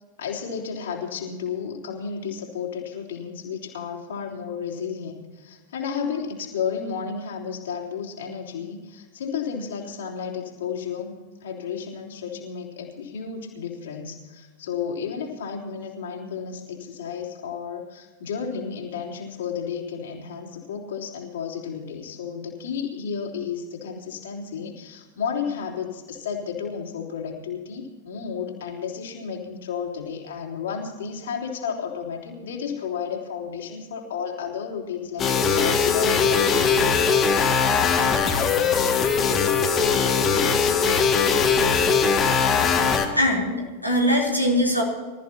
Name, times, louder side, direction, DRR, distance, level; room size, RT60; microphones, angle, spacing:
voice 1, 0.2-37.1, left 6 dB, 60° left, -1 dB, 3.6 m, -32 dB
sound 1, 35.2-43.1, left 5 dB, 25° left, 2.2 m, -20 dB
voice 2, 43.2-44.8, left 1 dB, 90° right, -2 dB, 3.7 m, -21 dB
25.5 x 14.5 x 3.0 m, 1.4 s
figure-of-eight pair, 90°, 0 cm